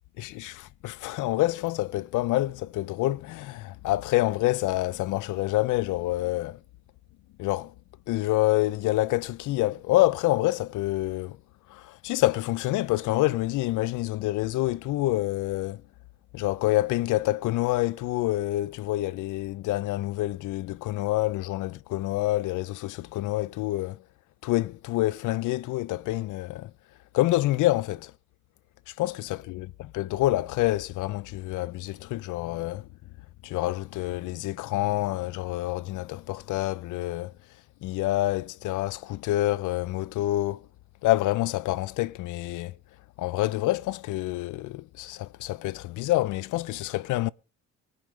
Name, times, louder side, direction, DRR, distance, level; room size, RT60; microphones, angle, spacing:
voice 1, 0.2-6.6 7.4-7.7 8.1-11.4 11.7-15.8 16.3-24.0 24.4-26.7 27.1-28.1 29.0-32.9 33.4-37.3 37.8-40.7 41.0-42.8 43.2-47.3, left 17 dB, 85° left, 0.7 m, -27 dB
24.0 x 9.6 x 3.3 m
cardioid pair, 150°, 30 cm